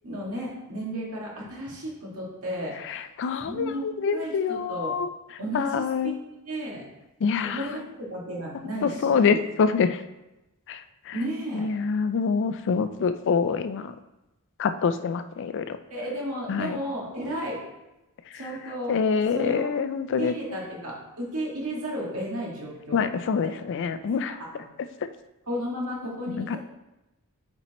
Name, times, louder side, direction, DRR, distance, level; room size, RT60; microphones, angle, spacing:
voice 1, 0.0-3.1 3.4-5.0 5.4-6.9 7.4-9.4 11.1-11.7 15.9-17.6 18.3-18.9 19.3-19.7 20.2-23.1 23.9-24.0 24.5-24.6 25.5-26.6, equal, 70° right, -3 dB, 1.9 m, -33 dB
voice 2, 2.8-5.1 5.5-6.2 7.2-7.6 8.8-10.0 10.7-11.1 11.5-13.9 14.6-15.8 16.5-16.8 18.3-18.4 18.9-20.3 22.9-24.4 26.3-26.6, left 5 dB, 55° left, 11 dB, 0.4 m, -26 dB
8.3 x 4.4 x 3.0 m, 0.97 s
head